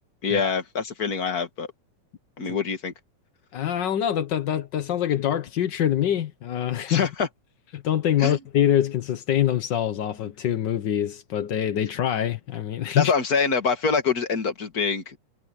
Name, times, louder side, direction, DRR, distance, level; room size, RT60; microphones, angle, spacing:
voice 1, 0.2-1.7 2.4-2.9 6.9-7.3 8.2-8.4 13.0-15.2, left 5 dB, 35° left, 2.1 m, -25 dB
voice 2, 3.5-7.1 7.7-13.1, left 10 dB, 60° left, 1.1 m, -25 dB
omnidirectional pair, 3.3 m